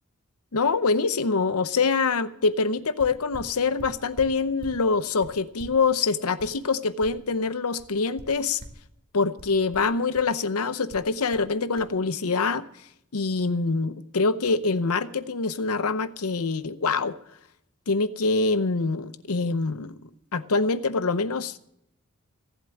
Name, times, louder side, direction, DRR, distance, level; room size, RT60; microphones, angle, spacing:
voice 1, 0.5-8.6 9.1-12.7 13.1-17.1 17.9-19.9 20.3-21.6, left 4 dB, 80° left, 0.8 m, -25 dB
sound 1, 3.0-4.8 5.2-7.5 7.8-8.9 9.4-10.4 10.9-11.5 11.8-11.9, equal, 40° right, 1.8 m, -45 dB
15.5 x 8.1 x 7.6 m
head